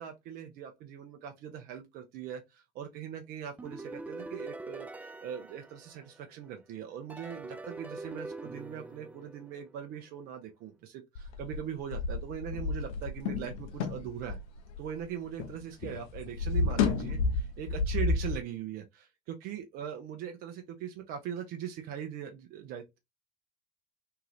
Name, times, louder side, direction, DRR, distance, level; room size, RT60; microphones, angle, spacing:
voice 1, 0.0-4.9 5.2-14.4 14.8-23.0, right 9 dB, 55° right, 0.7 m, -41 dB
sound 1, 3.6-6.4 7.1-9.9, right 2 dB, 10° right, 0.3 m, -44 dB
sound 2, 11.2-15.6 15.8-18.4, left 4 dB, 70° left, 0.6 m, -31 dB
2.7 x 2.4 x 3.2 m
figure-of-eight pair, 60°, 19 cm